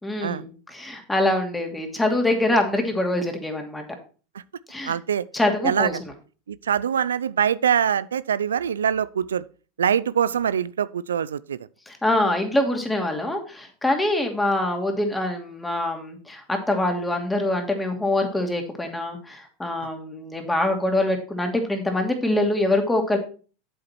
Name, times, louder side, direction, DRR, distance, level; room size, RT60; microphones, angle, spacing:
voice 1, 0.0-3.8 4.7-4.9 5.3-6.0 11.9-23.2, left 1 dB, 10° left, 2.6 m, -24 dB
voice 2, 4.8-5.2 5.6-5.9 6.5-9.4 9.8-11.6 19.8-19.9, right 8 dB, 90° right, 0.3 m, -23 dB
7.9 x 7.8 x 4.5 m
hypercardioid pair, 95°, 0 cm